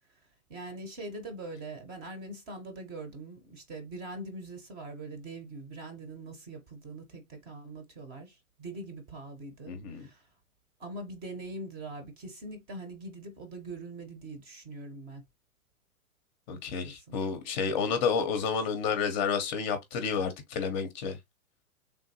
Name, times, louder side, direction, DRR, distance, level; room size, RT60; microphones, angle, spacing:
voice 1, 0.5-10.3 10.8-15.2 16.5-17.2, right 2 dB, 20° right, 0.7 m, -43 dB
voice 2, 9.7-10.1 16.5-21.2, left 6 dB, 30° left, 0.6 m, -30 dB
3.4 x 2.5 x 2.7 m
hypercardioid pair, 120°, 43 cm